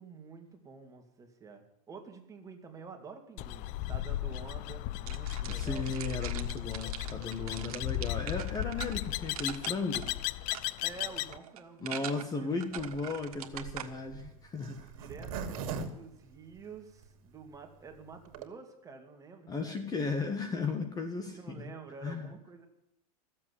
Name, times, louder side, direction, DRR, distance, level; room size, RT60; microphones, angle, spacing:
voice 1, 0.0-6.1 10.8-11.9 12.1-12.5 14.9-20.0 20.3-20.4 21.3-22.7, right 5 dB, 15° right, 3 dB, 2.3 m, -49 dB
sound 1, 3.4-11.4, left 15 dB, 45° left, 0.5 m, -36 dB
sound 2, 5.1-13.9, right 11 dB, 85° right, 1.5 m, -43 dB
voice 2, 5.5-10.0 11.8-14.9 19.5-21.7 22.0-22.3, left 3 dB, 20° left, 7 dB, 1.4 m, -35 dB
Zipper (clothing), 12.7-17.0 17.5-17.6 17.8-17.9 18.1-18.5, right 6 dB, 65° right, 2.4 m, -40 dB
15.0 x 7.7 x 9.9 m, 0.80 s
supercardioid pair, 135°, 19 cm